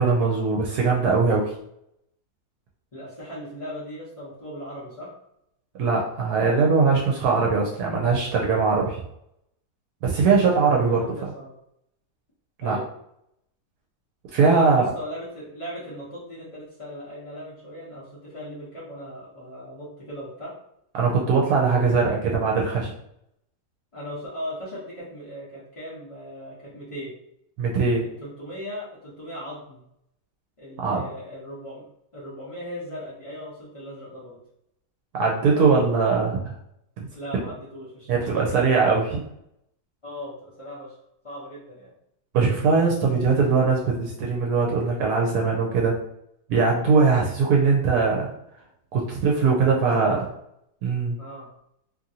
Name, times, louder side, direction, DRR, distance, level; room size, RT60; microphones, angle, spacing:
voice 1, 0.0-1.5 5.8-9.0 10.0-11.0 12.6-12.8 14.3-14.8 20.9-22.9 27.6-28.0 30.8-31.0 35.1-36.4 37.0-37.1 38.1-39.2 42.3-46.0 46.5-48.3 48.9-50.2 50.8-51.2, right 4 dB, 75° right, -2 dB, 1.1 m, -21 dB
voice 2, 2.9-5.1 10.9-11.5 12.6-12.9 14.5-20.5 23.9-27.1 28.2-29.8 30.6-31.8 32.1-34.4 37.1-39.0 40.0-40.9 41.2-41.9 49.3-50.2 51.2-51.5, equal, 35° left, -9 dB, 0.5 m, -38 dB
2.9 x 2.5 x 2.7 m, 0.75 s
omnidirectional pair, 1.7 m